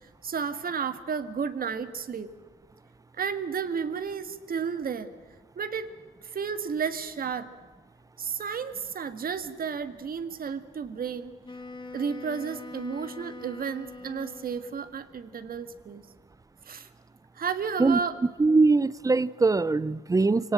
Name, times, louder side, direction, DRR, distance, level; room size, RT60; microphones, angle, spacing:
voice 1, 0.2-2.3 3.2-5.1 5.5-5.9 6.3-7.5 8.2-11.3 11.9-16.0 16.6-16.9 17.3-18.2, right 6 dB, 45° right, 11 dB, 1.6 m, -32 dB
Wind instrument woodwind instrument, 11.4-15.0, left 3 dB, 25° left, 2.0 m, -43 dB
voice 2, 18.4-20.5, right 3 dB, 15° right, 19 dB, 0.6 m, -22 dB
24.5 x 18.0 x 7.7 m, 1.5 s
cardioid pair, 90°, 20 cm